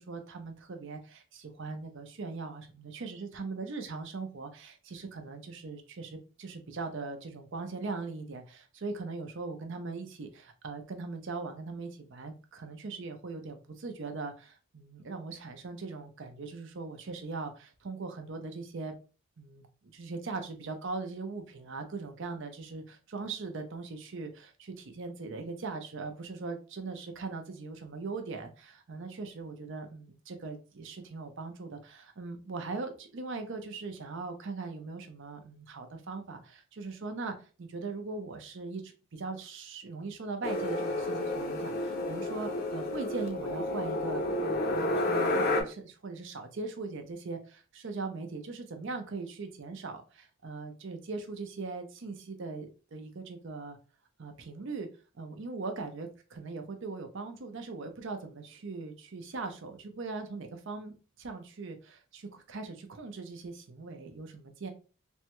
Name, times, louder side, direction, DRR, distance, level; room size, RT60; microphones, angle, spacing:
voice 1, 0.0-18.9 19.4-19.7 19.9-53.8 54.2-54.9 55.2-64.7, right 3 dB, 60° right, 0.6 m, -40 dB
sound 1, 40.4-45.6, left 1 dB, 45° left, 0.6 m, -31 dB
3.4 x 2.2 x 2.9 m
head